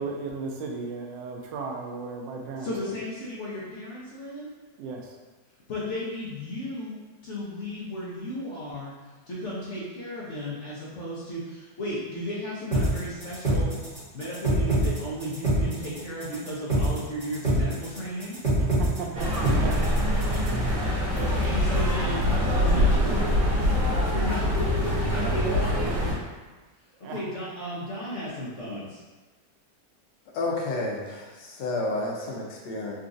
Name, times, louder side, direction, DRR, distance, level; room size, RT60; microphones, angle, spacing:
voice 1, 0.0-2.7 4.8-5.2 18.6-20.1 21.4-21.6 27.0-27.2, right 4 dB, 90° right, 1 dB, 1.3 m, -35 dB
voice 2, 2.6-4.5 5.7-8.9 9.3-13.8 14.1-18.4 21.1-23.3 24.1-26.2 27.1-29.0, equal, 60° left, -7 dB, 0.7 m, -34 dB
sound 1, 12.7-20.7, right 1 dB, 25° right, 1.1 m, -25 dB
sound 2, 19.1-26.1, equal, 65° right, 1.5 m, -24 dB
voice 3, 30.3-32.9, left 2 dB, 85° left, -1 dB, 1.3 m, -30 dB
3.9 x 2.4 x 2.5 m, 1.2 s
omnidirectional pair, 1.9 m